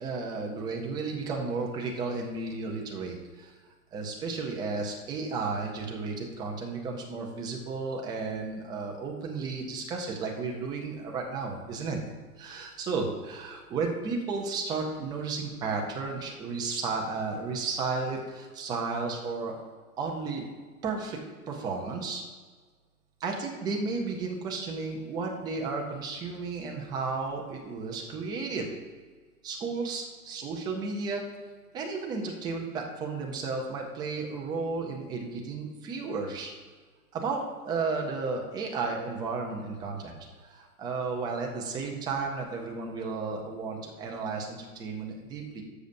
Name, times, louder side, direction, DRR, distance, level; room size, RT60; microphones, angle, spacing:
voice 1, 0.0-3.5 3.9-12.0 12.4-19.5 20.0-20.5 20.8-21.2 21.5-22.2 23.2-28.7 29.4-31.2 31.7-36.5 37.1-40.1 40.4-45.6, right 4 dB, 10° right, 0 dB, 0.5 m, -33 dB
13.0 x 6.8 x 2.6 m, 1.5 s
hypercardioid pair, 140°, 47 cm